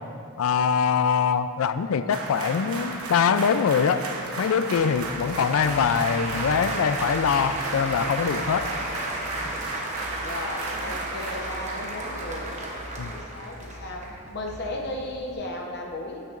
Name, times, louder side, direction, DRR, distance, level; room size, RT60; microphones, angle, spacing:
voice 1, 0.4-4.0 4.4-8.7 13.0-13.1, left 6 dB, 70° left, 12 dB, 0.3 m, -23 dB
sound 1, 1.9-10.6, right 1 dB, 30° left, 1.7 m, -48 dB
sound 2, 2.1-11.3, right 3 dB, 75° right, 0.9 m, -35 dB
Applause, 4.7-15.3, right 1 dB, 30° right, 0.9 m, -34 dB
voice 2, 10.2-12.5 13.1-14.0 14.3-16.2, left 1 dB, 50° left, -1 dB, 0.9 m, -35 dB
14.0 x 6.6 x 2.5 m, 2.7 s
head